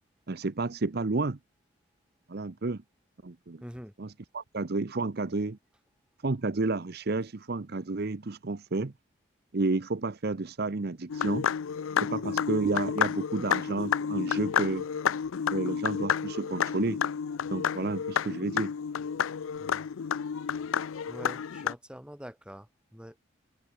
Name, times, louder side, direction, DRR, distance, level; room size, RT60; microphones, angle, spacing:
voice 1, 0.3-1.4 2.3-2.8 3.2-3.6 4.0-5.6 6.2-8.9 9.5-11.5 12.0-14.9 15.5-17.0 17.5-18.7, right 3 dB, 50° right, 0.7 m, -31 dB
voice 2, 3.6-3.9 12.2-12.4 19.6-19.9 21.1-23.2, equal, 5° right, 1.4 m, -45 dB
sound 1, 11.1-21.7, left 7 dB, 85° left, 0.5 m, -30 dB
open air
head